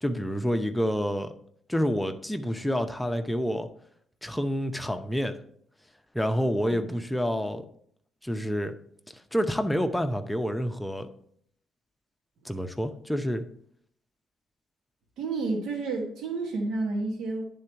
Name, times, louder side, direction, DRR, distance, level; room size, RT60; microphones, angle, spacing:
voice 1, 0.0-1.3 1.7-3.7 4.2-5.4 6.1-7.7 8.2-8.7 9.1-11.1 12.4-13.5, equal, 5° left, 7 dB, 0.7 m, -28 dB
voice 2, 15.2-17.5, right 3 dB, 80° right, 0 dB, 1.3 m, -30 dB
9.7 x 3.8 x 4.5 m, 0.66 s
cardioid pair, 90°, 0 cm